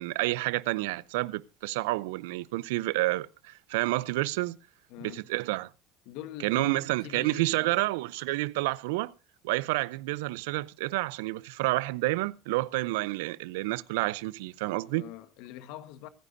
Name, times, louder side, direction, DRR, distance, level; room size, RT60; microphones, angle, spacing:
voice 1, 0.0-4.6 5.0-5.7 6.4-9.1 9.4-15.1, right 20 dB, 80° right, 0.6 m, -29 dB
voice 2, 4.9-5.3 6.0-7.8 14.9-16.1, left 12 dB, 70° left, 1.4 m, -44 dB
25.5 x 9.9 x 2.7 m
hypercardioid pair, 75°, 0 cm